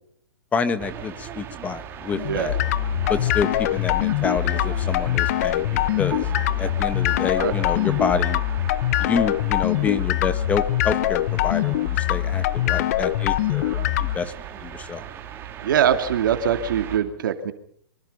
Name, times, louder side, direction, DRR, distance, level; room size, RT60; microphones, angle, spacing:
voice 1, 0.5-2.6 3.1-6.3 6.6-8.4 9.0-14.3 14.6-15.0, left 5 dB, 15° left, 11 dB, 1.8 m, -28 dB
sound 1, 0.8-17.0, right 9 dB, 20° right, 3.1 m, -37 dB
sound 2, 2.1-14.2, left 14 dB, 45° left, 1.0 m, -23 dB
voice 2, 15.6-17.5, right 9 dB, 65° right, 7 dB, 2.6 m, -22 dB
25.0 x 24.5 x 5.6 m, 0.64 s
hypercardioid pair, 155°, 12 cm